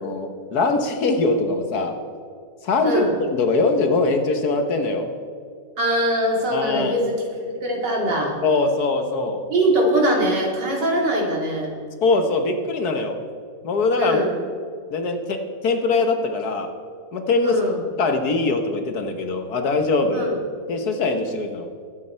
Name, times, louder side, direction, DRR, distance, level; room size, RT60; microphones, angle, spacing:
voice 1, 0.0-2.0 2.6-5.1 6.5-6.9 8.4-9.4 12.0-13.2 13.6-14.2 14.9-16.7 17.1-17.6 18.0-20.3 20.7-21.7, left 3 dB, 60° left, 6 dB, 1.5 m, -22 dB
voice 2, 2.8-3.1 5.8-8.4 9.5-11.7 14.0-14.4 17.4-17.8 20.1-20.4, equal, 65° right, -1 dB, 3.1 m, -22 dB
21.0 x 8.4 x 4.4 m, 2.2 s
omnidirectional pair, 2.0 m